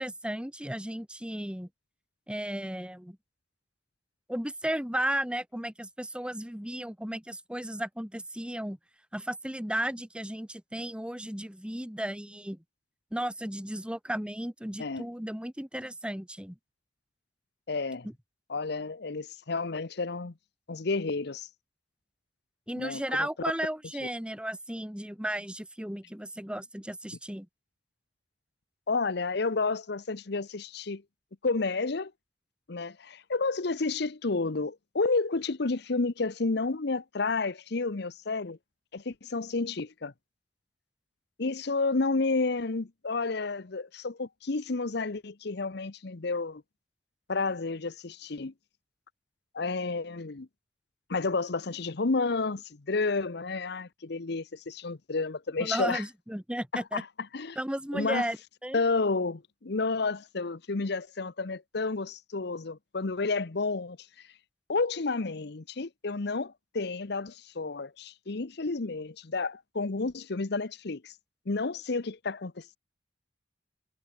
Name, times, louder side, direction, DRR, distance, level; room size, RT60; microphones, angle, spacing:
voice 1, 0.0-1.7 2.3-3.2 4.3-8.8 9.1-12.6 13.1-16.6 18.0-18.1 22.7-27.5 55.6-57.0 57.5-58.8, right 1 dB, 5° right, 1.5 m, -34 dB
voice 2, 17.7-18.1 18.5-20.3 20.7-21.5 22.8-23.3 28.9-31.0 31.4-32.1 32.7-38.6 38.9-40.1 41.4-46.6 47.3-48.5 49.5-50.5 51.1-56.0 56.7-57.0 57.3-57.6 57.9-58.3 58.7-64.0 64.7-71.1 71.5-72.8, left 3 dB, 65° left, 0.9 m, -31 dB
head